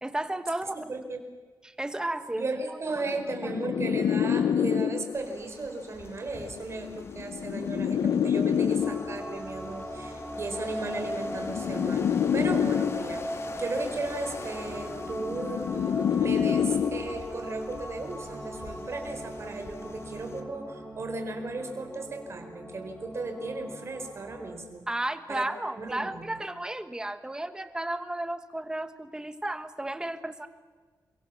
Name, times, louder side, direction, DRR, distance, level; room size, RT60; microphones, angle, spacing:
voice 1, 0.0-0.8 1.6-3.5 24.9-30.5, right 1 dB, 10° right, 10 dB, 1.4 m, -34 dB
voice 2, 0.7-1.2 2.3-24.9 25.3-25.4 25.8-26.4, right 3 dB, 40° right, 5 dB, 4.5 m, -36 dB
sound 1, 2.9-5.3 6.4-9.3 10.4-13.3 14.4-17.3, left 8 dB, 75° left, 0.8 m, -28 dB
sound 2, 5.1-20.4, left 3 dB, 40° left, 2.0 m, -47 dB
sound 3, 8.8-24.6, equal, 10° left, 4.3 m, -39 dB
29.5 x 23.0 x 7.3 m, 1.5 s
wide cardioid pair, 165°, 7 cm